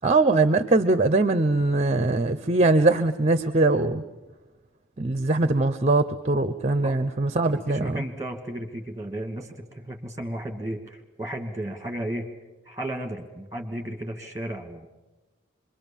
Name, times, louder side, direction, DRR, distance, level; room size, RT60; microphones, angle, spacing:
voice 1, 0.0-4.0 5.0-8.0, right 2 dB, 30° right, 11 dB, 0.7 m, -21 dB
voice 2, 7.5-12.3 12.7-14.9, right 1 dB, 15° right, 5 dB, 2.4 m, -34 dB
25.5 x 22.5 x 7.3 m, 1.1 s
head